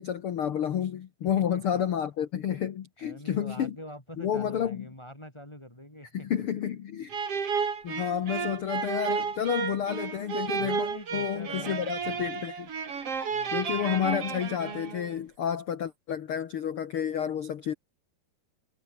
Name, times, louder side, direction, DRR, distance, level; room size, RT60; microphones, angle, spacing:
voice 1, 0.0-3.7 4.2-4.8 6.1-7.1 7.8-10.9 11.1-12.7 13.5-17.7, left 9 dB, 80° left, 1.2 m, -30 dB
voice 2, 1.3-1.8 3.0-6.4 10.5-12.4 13.3-13.9, equal, 5° left, 4.4 m, -45 dB
sound 1, 7.1-15.2, right 6 dB, 40° right, 3.7 m, -32 dB
omnidirectional pair, 4.3 m